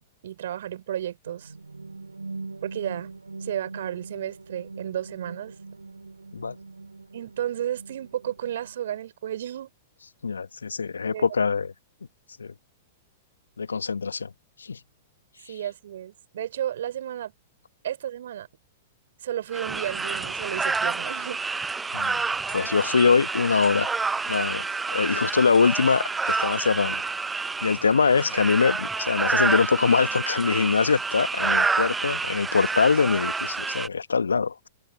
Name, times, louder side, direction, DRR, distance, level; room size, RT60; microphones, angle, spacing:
voice 1, 0.0-1.5 2.6-3.1 3.4-5.5 7.1-9.7 11.1-11.2 15.5-17.3 17.8-18.5 19.2-21.4, right 11 dB, 60° right, 4.0 m, -32 dB
sound 1, 1.3-9.1, right 3 dB, 85° right, 3.5 m, -41 dB
voice 2, 10.2-11.7 12.4-12.5 13.6-14.3 14.6-14.8 21.9-22.2 22.5-23.9 24.3-27.0 27.6-34.7, left 5 dB, 75° left, 1.2 m, -23 dB
sound 2, 19.5-33.9, right 4 dB, 10° right, 0.7 m, -28 dB
figure-of-eight pair, 105°, 0 cm